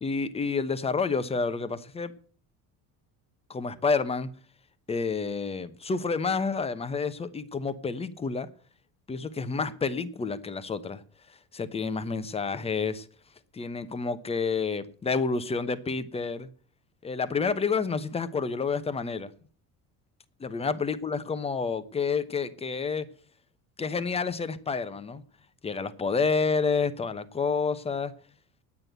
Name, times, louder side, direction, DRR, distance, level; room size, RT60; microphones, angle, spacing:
voice 1, 0.0-2.1 3.5-4.3 4.9-8.5 9.1-11.0 11.5-13.1 13.5-16.5 17.0-19.3 20.4-23.1 23.8-25.2 25.6-28.1, left 4 dB, 15° left, 0.9 m, -29 dB
9.7 x 9.2 x 8.0 m
cardioid pair, 140°, 36 cm